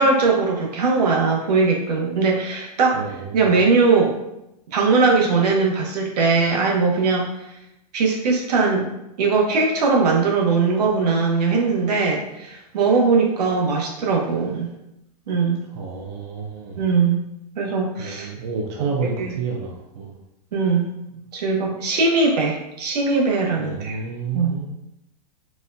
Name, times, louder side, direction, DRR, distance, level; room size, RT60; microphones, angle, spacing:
voice 1, 0.0-3.0 3.3-4.1 4.7-7.3 7.9-8.9 9.2-14.7 15.3-15.6 16.8-17.2 17.6-18.3 18.8-19.3 20.5-20.9 21.3-24.0 24.3-24.5, right 4 dB, 75° right, 0 dB, 0.9 m, -20 dB
voice 2, 2.9-3.5 15.7-16.8 18.0-20.1 23.6-24.7, right 5 dB, 40° right, -1 dB, 0.4 m, -29 dB
4.0 x 2.2 x 2.5 m, 0.86 s
supercardioid pair, 165°, 21 cm